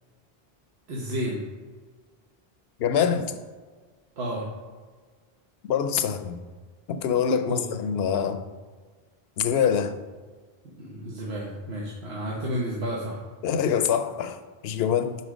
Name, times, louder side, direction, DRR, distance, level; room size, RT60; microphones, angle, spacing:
voice 1, 0.9-1.4 4.2-4.4 7.4-7.7 10.8-13.2, equal, 90° right, -4 dB, 1.3 m, -31 dB
voice 2, 2.8-3.3 5.6-6.4 6.9-8.4 9.4-10.0 13.4-14.4 14.6-15.2, left 7 dB, 80° left, 9 dB, 0.8 m, -24 dB
5.5 x 4.2 x 6.2 m, 1.5 s
omnidirectional pair, 1.0 m